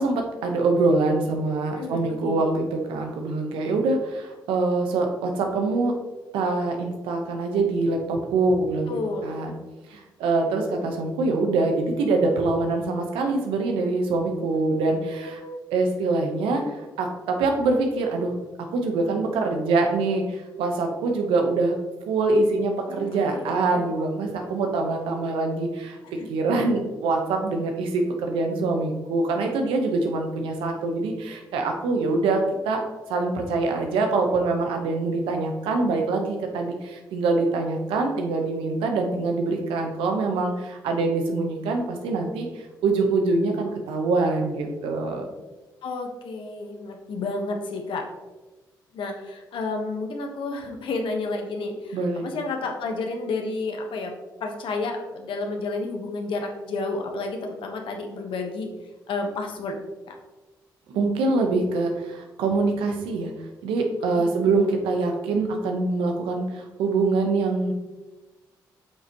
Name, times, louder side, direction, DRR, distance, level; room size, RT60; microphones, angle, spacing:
voice 1, 0.0-5.9 6.3-9.6 9.9-15.4 15.7-18.4 18.7-21.7 22.1-26.0 26.3-32.8 33.1-45.3 51.9-52.2 60.9-63.3 63.6-67.7, right 3 dB, 90° right, 3 dB, 1.1 m, -24 dB
voice 2, 1.7-2.5 8.9-9.3 15.2-15.6 22.9-23.9 26.2-26.3 45.8-48.1 48.9-54.1 54.4-58.7 59.1-59.8 64.1-64.5, left 3 dB, 75° left, 3 dB, 1.2 m, -31 dB
8.1 x 5.9 x 3.0 m, 1.2 s
supercardioid pair, 55°, 9 cm